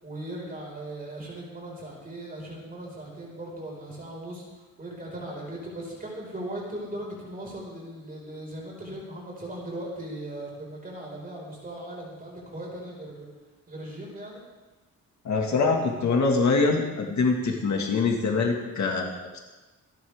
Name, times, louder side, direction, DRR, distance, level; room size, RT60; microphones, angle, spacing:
voice 1, 0.0-4.5 4.8-13.3 13.7-14.4, right 1 dB, 25° right, -3 dB, 5.3 m, -38 dB
voice 2, 15.2-19.4, left 4 dB, 55° left, 1 dB, 2.0 m, -24 dB
26.5 x 11.5 x 3.6 m, 1.2 s
wide cardioid pair, 175°, 34 cm